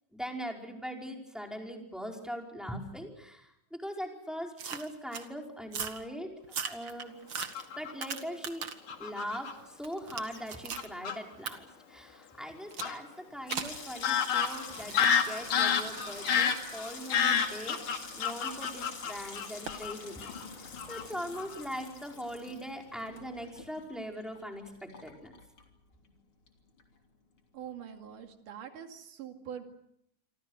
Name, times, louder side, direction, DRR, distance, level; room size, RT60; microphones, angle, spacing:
voice 1, 0.1-6.3 6.6-7.2 7.8-8.6 9.0-17.8 18.2-25.3, equal, ahead, 1 dB, 4.6 m, -41 dB
sound 1, 4.6-5.3 5.7-6.0 6.4-8.9 9.3-10.9 11.5-11.6 12.7-13.0 13.5-13.8 14.7-18.7 19.7-19.8, right 6 dB, 45° right, 2.0 m, -41 dB
Fowl / Bird vocalization bird call bird song, 7.4-8.1 8.9-9.5 10.3-10.4 10.8-11.2 12.8-12.9 13.5-13.6 14.0-19.9 20.2-20.5 20.8-21.0 21.4-21.6, left 7 dB, 80° left, 3.7 m, -29 dB
Water tap faucet / Sink (filling or washing), 13.3-26.2 26.5-27.1 27.4-27.7, left 4 dB, 40° left, 3.8 m, -47 dB
voice 2, 27.5-29.6, right 9 dB, 80° right, 5 dB, 3.9 m, -44 dB
28.5 x 25.0 x 6.5 m, 0.77 s
omnidirectional pair, 3.7 m